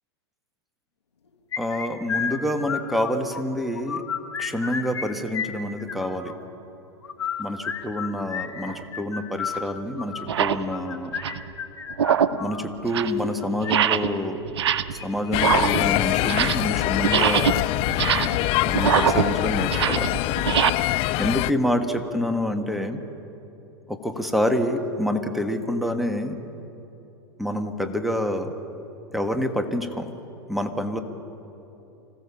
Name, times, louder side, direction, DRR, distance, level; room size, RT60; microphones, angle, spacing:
sound 1, 1.5-3.4 3.7-5.1 5.3-6.3 7.0-12.7 13.4-13.7 15.0-15.8 16.1-16.2 16.6-16.7 17.3-17.7, left 7 dB, 90° left, 1.9 m, -32 dB
voice 1, 1.6-4.0 4.4-6.4 7.4-11.1 12.4-14.6 14.9-17.5 18.6-20.1 21.2-23.0 23.9-26.4 27.4-28.6 29.1-30.1 30.5-31.0, left 1 dB, ahead, 5 dB, 1.6 m, -27 dB
sound 2, 8.6-8.8 9.5-9.6 10.2-10.7 11.0-11.5 11.9-12.5 12.8-13.2 13.6-14.2 14.5-15.0 15.3-16.7 17.0-20.7, right 9 dB, 75° right, 0.9 m, -23 dB
sound 3, 15.3-21.5, left 18 dB, 40° left, 0.4 m, -24 dB
26.0 x 16.5 x 7.1 m, 2.9 s
hypercardioid pair, 110°, 14 cm